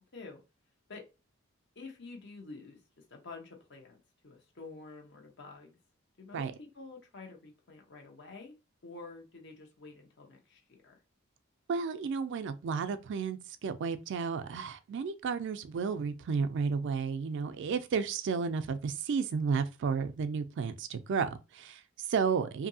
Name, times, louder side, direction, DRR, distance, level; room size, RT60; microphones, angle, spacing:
voice 1, 1.8-2.8 3.1-5.8 6.2-8.5 8.8-11.0, left 3 dB, 60° left, 0.9 m, -49 dB
voice 2, 11.7-22.7, right 5 dB, 60° right, 0.3 m, -32 dB
2.7 x 2.6 x 2.7 m
head